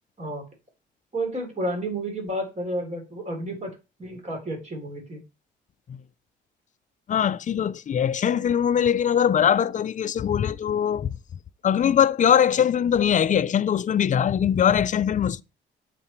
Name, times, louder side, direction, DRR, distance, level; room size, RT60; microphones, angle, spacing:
voice 1, 1.1-5.2, right 1 dB, 35° right, 3.5 m, -31 dB
voice 2, 7.1-11.1 11.6-15.4, left 9 dB, 40° left, 0.5 m, -21 dB
7.6 x 4.2 x 4.4 m
cardioid pair, 90°, 20 cm